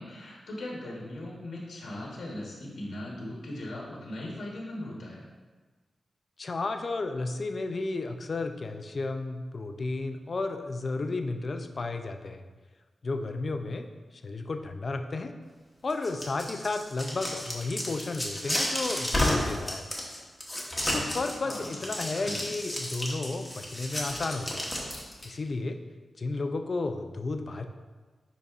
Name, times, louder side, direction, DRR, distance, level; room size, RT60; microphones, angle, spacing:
voice 1, 0.0-5.2 21.4-22.5, left 1 dB, 90° left, -4 dB, 1.2 m, -39 dB
voice 2, 6.4-12.4 13.0-13.9 14.2-15.3 15.8-19.9 20.9-24.7 25.2-25.8 26.2-27.6, left 3 dB, 40° left, 7 dB, 0.4 m, -33 dB
sound 1, 15.9-25.3, left 1 dB, 10° left, 1.1 m, -32 dB
10.0 x 4.0 x 2.4 m, 1.3 s
wide cardioid pair, 160°, 0 cm